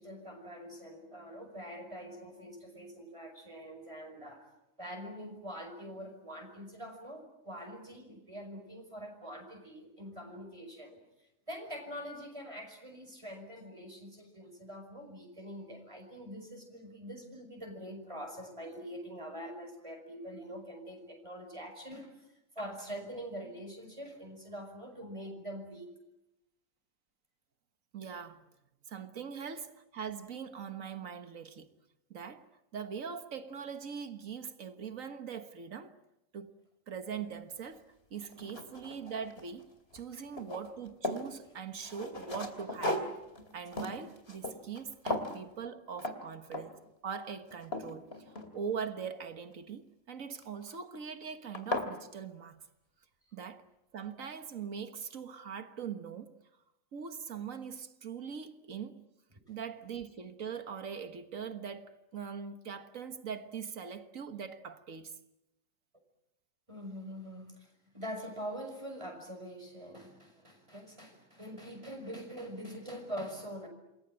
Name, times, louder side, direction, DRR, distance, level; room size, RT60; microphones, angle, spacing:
voice 1, 0.0-4.4 4.8-11.0 11.5-22.1 22.6-25.9 40.1-40.2 66.7-73.7, equal, 25° right, 5.5 m, -44 dB
voice 2, 27.9-28.4 28.9-31.7 32.1-35.9 36.3-36.5 36.9-39.7 39.9-43.1 43.5-48.1 48.5-52.6 53.3-53.6 53.9-56.3 56.9-59.0 59.5-65.2, right 6 dB, 90° right, 1.8 m, -42 dB
sound 1, 37.6-37.7 38.2-39.6 39.9-41.3 41.8-44.8 45.1-45.4 46.0-46.2 46.5-46.9 47.3-48.9 50.4-50.8 51.2-51.3 51.5-51.9, left 1 dB, 50° left, 3.2 m, -37 dB
28.0 x 21.5 x 8.9 m
omnidirectional pair, 1.3 m